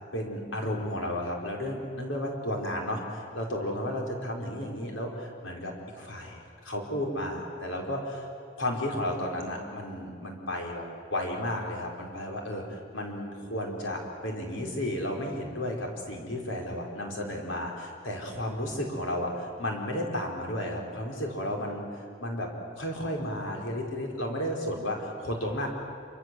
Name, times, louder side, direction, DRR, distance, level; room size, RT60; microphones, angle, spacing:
voice 1, 0.1-8.3 8.6-10.8 11.1-22.5 22.8-25.7, left 1 dB, 90° left, 1 dB, 5.2 m, -33 dB
27.0 x 25.0 x 8.0 m, 2.3 s
head